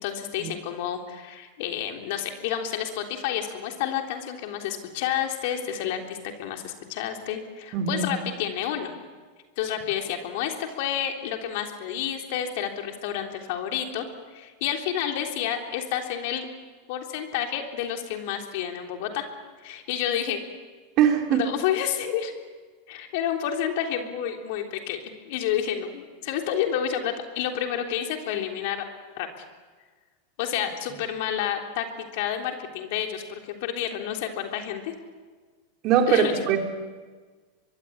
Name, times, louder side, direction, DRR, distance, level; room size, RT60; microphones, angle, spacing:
voice 1, 0.0-8.9 9.6-14.1 14.3-16.5 16.9-19.2 19.6-20.4 21.3-22.3 22.9-28.8 29.2-29.4 30.4-31.8 32.1-34.9 36.1-36.3, left 9 dB, 65° left, 4 dB, 3.5 m, -30 dB
voice 2, 7.7-8.1 21.0-21.4 35.8-36.6, right 8 dB, 50° right, 3 dB, 3.8 m, -21 dB
23.5 x 23.0 x 8.8 m, 1.4 s
hypercardioid pair, 105°, 0 cm